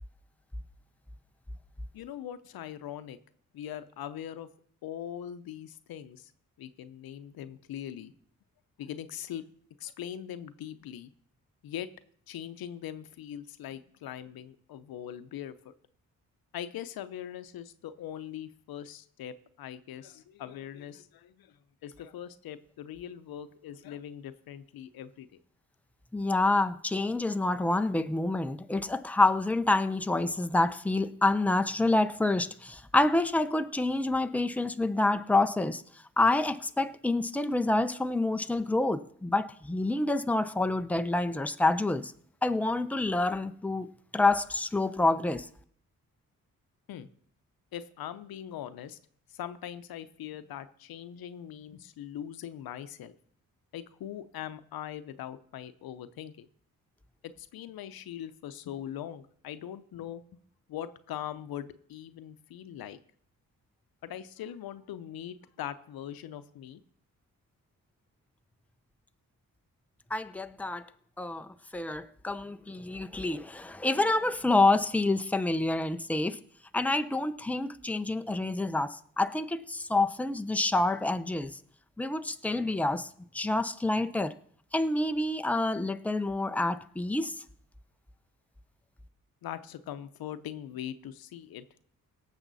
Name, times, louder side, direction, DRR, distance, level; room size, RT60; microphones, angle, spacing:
voice 1, 1.9-3.2 3.5-4.5 4.8-6.3 6.6-8.1 8.8-9.4 9.8-11.1 11.6-11.9 12.3-15.7 16.5-25.4 46.9-47.1 47.7-49.0 49.3-53.1 53.7-56.5 57.2-60.4 60.7-63.0 64.0-66.8 89.4-91.7, left 10 dB, 85° left, 0.8 m, -41 dB
voice 2, 26.1-35.8 36.2-42.1 42.4-45.5 70.1-70.9 71.2-76.4 76.7-81.6 82.0-83.1 83.3-84.3 84.7-87.4, left 2 dB, 5° left, 0.7 m, -27 dB
18.0 x 7.2 x 4.1 m
cardioid pair, 65°, 35 cm